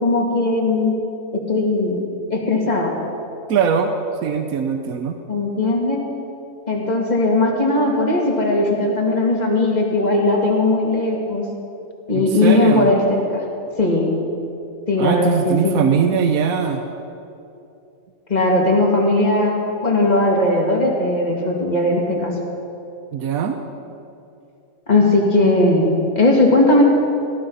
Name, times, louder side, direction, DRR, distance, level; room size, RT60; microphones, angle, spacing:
voice 1, 0.0-0.9 1.3-2.0 2.3-2.9 5.3-6.0 6.7-11.4 12.1-13.4 13.8-14.1 14.9-15.8 18.3-19.5 19.8-22.3 24.9-25.9 26.1-26.8, left 2 dB, 30° left, -1 dB, 2.4 m, -18 dB
voice 2, 3.5-3.9 4.2-5.2 12.1-12.9 15.0-16.8 23.1-23.6, right 7 dB, 85° right, 6 dB, 1.3 m, -20 dB
18.0 x 13.0 x 5.5 m, 2.7 s
omnidirectional pair, 1.5 m